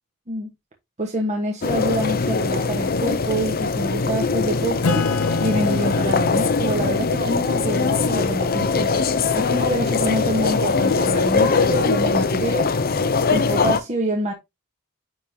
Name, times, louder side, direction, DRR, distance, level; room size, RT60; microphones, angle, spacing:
voice 1, 1.0-5.0 5.4-8.9 9.3-12.8 13.3-14.3, right 1 dB, 30° right, 1.3 m, -26 dB
sound 1, 1.6-13.8, left 4 dB, 45° left, 0.7 m, -21 dB
Acoustic guitar / Strum, 4.8-9.8, left 4 dB, 80° left, 0.7 m, -30 dB
10.0 x 3.7 x 2.9 m
head